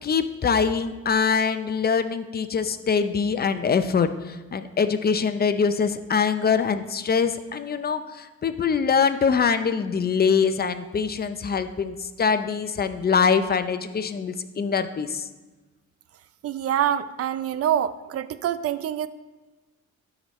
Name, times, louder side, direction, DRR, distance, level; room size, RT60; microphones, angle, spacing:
voice 1, 0.0-15.3, left 6 dB, 30° left, 10 dB, 0.5 m, -23 dB
voice 2, 16.4-19.1, right 10 dB, 50° right, 14 dB, 0.5 m, -25 dB
12.5 x 5.0 x 3.1 m, 1.2 s
cardioid pair, 90°, 30 cm